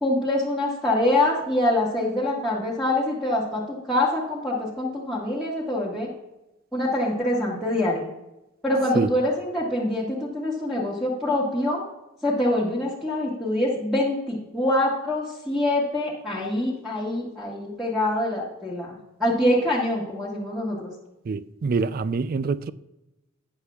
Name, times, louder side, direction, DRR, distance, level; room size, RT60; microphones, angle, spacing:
voice 1, 0.0-6.1 6.7-8.1 8.6-11.8 12.2-18.9 19.2-20.9, left 1 dB, ahead, 1.5 m, -25 dB
voice 2, 21.3-22.7, right 4 dB, 45° right, 0.3 m, -25 dB
12.5 x 9.7 x 2.4 m
head